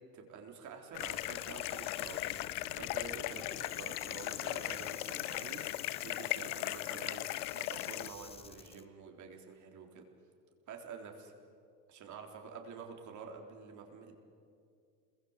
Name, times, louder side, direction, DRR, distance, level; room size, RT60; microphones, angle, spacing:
voice 1, 0.1-2.2 2.8-5.7 6.0-10.0 10.7-11.3 11.9-14.1, right 5 dB, 35° right, 2 dB, 3.8 m, -48 dB
sound 1, 0.9-8.1, left 18 dB, 70° left, 0.9 m, -38 dB
sound 2, 1.0-8.9, left 6 dB, 10° left, 0.7 m, -51 dB
27.5 x 22.5 x 8.1 m, 2.4 s
supercardioid pair, 130°, 48 cm